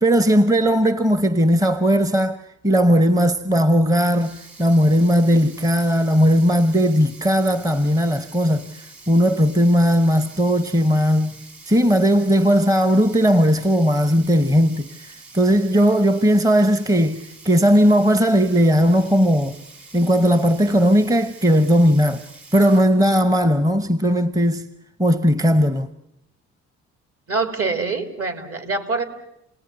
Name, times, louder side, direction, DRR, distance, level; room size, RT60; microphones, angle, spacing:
voice 1, 0.0-19.6 19.9-22.2 22.5-24.7 25.0-25.9, equal, 10° right, 0.9 m, -17 dB
Sink (filling or washing), 4.1-22.8, right 3 dB, 65° right, 7.0 m, -45 dB
voice 2, 27.3-29.0, right 4 dB, 50° right, 3.7 m, -24 dB
29.0 x 19.0 x 9.8 m
cardioid pair, 90°, 30 cm